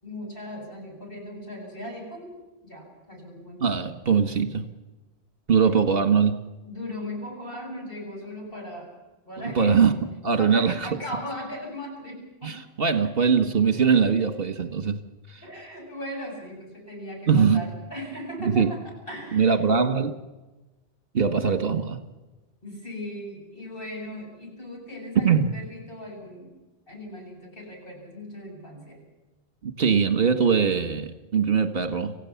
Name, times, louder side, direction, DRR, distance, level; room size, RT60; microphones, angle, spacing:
voice 1, 0.0-2.3 2.6-3.6 5.6-5.7 6.6-8.9 9.3-9.7 10.4-12.6 15.4-19.5 22.6-26.6 26.9-29.0, left 1 dB, 55° left, -1 dB, 8.3 m, -38 dB
voice 2, 3.6-4.7 5.5-6.4 9.6-10.0 10.2-10.9 12.4-15.0 15.3-15.4 17.3-17.6 18.4-18.7 19.3-20.2 21.1-22.0 25.2-25.5 29.6-32.2, right 6 dB, 60° right, 8 dB, 1.8 m, -22 dB
27.0 x 16.0 x 7.2 m, 1.1 s
omnidirectional pair, 1.1 m